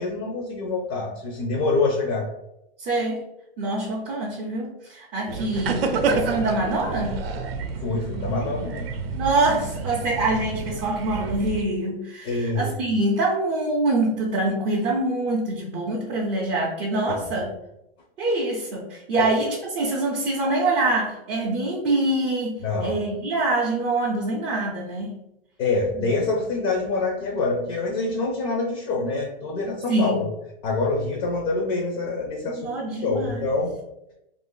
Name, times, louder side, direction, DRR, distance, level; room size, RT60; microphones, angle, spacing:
voice 1, 0.0-2.3 7.8-8.9 12.2-12.7 17.3-17.4 19.2-19.3 22.6-23.0 25.6-30.2 30.6-32.7 33.0-33.8, left 3 dB, 30° left, -1 dB, 0.6 m, -26 dB
voice 2, 2.8-3.2 3.6-7.2 9.1-17.5 18.2-25.2 26.0-26.1 29.9-30.2 32.5-33.5, right 2 dB, 20° right, -4 dB, 0.5 m, -25 dB
sound 1, 5.3-11.6, right 4 dB, 75° right, 0.6 m, -29 dB
2.6 x 2.5 x 3.6 m, 0.86 s
hypercardioid pair, 145°, 29 cm